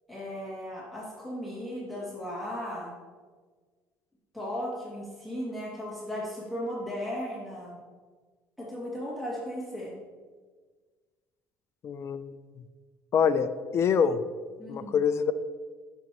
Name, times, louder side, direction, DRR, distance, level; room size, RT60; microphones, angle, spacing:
voice 1, 0.1-2.9 4.3-7.8 8.6-9.9 14.6-14.9, equal, ahead, -6 dB, 2.4 m, -36 dB
voice 2, 11.8-12.2 13.1-14.2 14.7-15.3, left 7 dB, 45° left, 11 dB, 0.6 m, -25 dB
10.5 x 6.5 x 3.0 m, 1.5 s
supercardioid pair, 85°, 6 cm